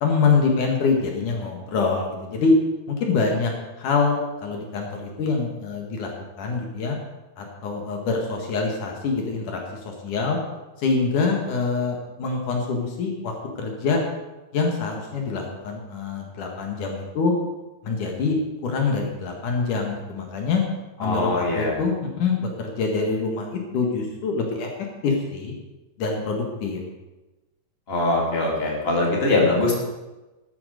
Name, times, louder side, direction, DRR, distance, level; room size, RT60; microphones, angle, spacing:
voice 1, 0.0-2.5 2.9-3.5 3.8-6.1 6.4-7.0 7.4-10.4 10.8-13.3 13.6-14.0 14.5-17.3 17.8-20.6 21.0-24.7 25.0-25.6 26.0-26.8, left 4 dB, 70° left, 1 dB, 3.4 m, -25 dB
voice 2, 21.0-21.8 27.9-29.7, left 2 dB, 20° left, -2 dB, 3.2 m, -22 dB
13.5 x 13.5 x 5.2 m, 1.1 s
omnidirectional pair, 3.8 m